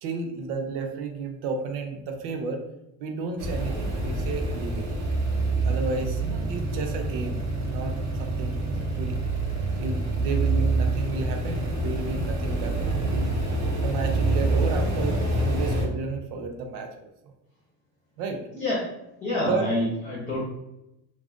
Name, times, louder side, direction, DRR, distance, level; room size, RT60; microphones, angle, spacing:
voice 1, 0.0-2.6 3.0-4.9 5.6-9.1 9.8-13.3 13.8-17.1 18.2-18.4 19.4-19.7, right 4 dB, 65° right, 4 dB, 0.6 m, -32 dB
sound 1, 3.4-15.8, right 2 dB, 40° right, 0.9 m, -26 dB
voice 2, 19.2-20.4, left 1 dB, 20° left, -7 dB, 0.9 m, -27 dB
2.4 x 2.4 x 3.5 m, 0.88 s
cardioid pair, 130°, 44 cm